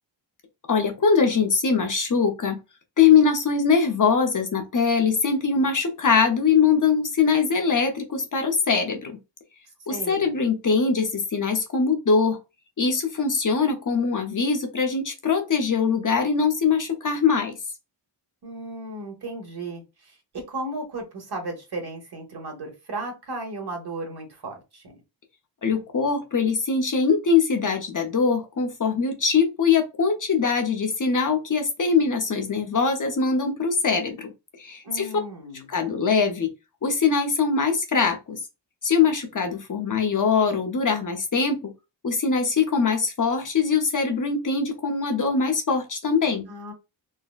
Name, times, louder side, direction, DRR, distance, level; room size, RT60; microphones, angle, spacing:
voice 1, 0.7-2.6 3.0-9.2 9.9-12.4 12.8-17.5 25.6-34.3 34.6-35.1 35.7-36.5 36.8-38.4 38.8-41.7 42.0-46.4, left 5 dB, 45° left, 0.7 m, -22 dB
voice 2, 9.9-10.4 18.4-24.9 34.8-35.7 46.5-46.7, right 2 dB, 60° right, 1.3 m, -35 dB
3.9 x 2.1 x 2.4 m
wide cardioid pair, 145°, 45 cm